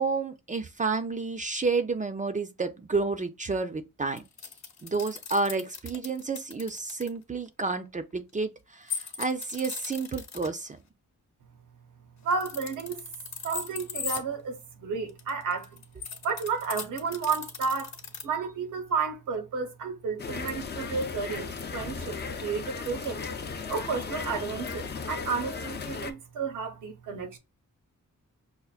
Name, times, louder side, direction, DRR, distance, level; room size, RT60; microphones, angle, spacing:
voice 1, 0.0-4.2 4.8-10.8, right 4 dB, 25° right, 0.4 m, -30 dB
sound 1, 4.2-7.1 8.9-10.5 12.2-14.2 15.1-18.2, left 6 dB, 60° left, 0.8 m, -38 dB
voice 2, 12.2-13.0 13.4-15.8 16.2-18.0 18.2-23.2 23.7-27.4, right 5 dB, 85° right, 0.8 m, -32 dB
sound 2, 20.2-26.1, left 5 dB, 35° left, 0.5 m, -36 dB
5.6 x 2.1 x 2.4 m
cardioid pair, 85°, 31 cm